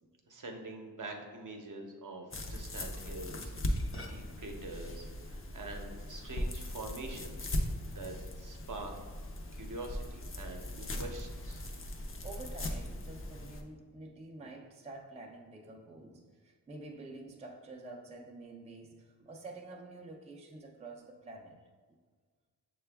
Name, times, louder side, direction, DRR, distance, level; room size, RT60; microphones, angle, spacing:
voice 1, 0.3-3.5 4.1-7.5 7.9-8.9 9.5-11.6, right 2 dB, 50° right, 2 dB, 0.7 m, -45 dB
sound 1, 2.3-13.6, left 1 dB, 35° left, 0.5 m, -39 dB
voice 2, 12.2-21.6, right 2 dB, 15° right, 1 dB, 0.4 m, -48 dB
6.5 x 2.3 x 3.3 m, 1.5 s
wide cardioid pair, 70°, 39 cm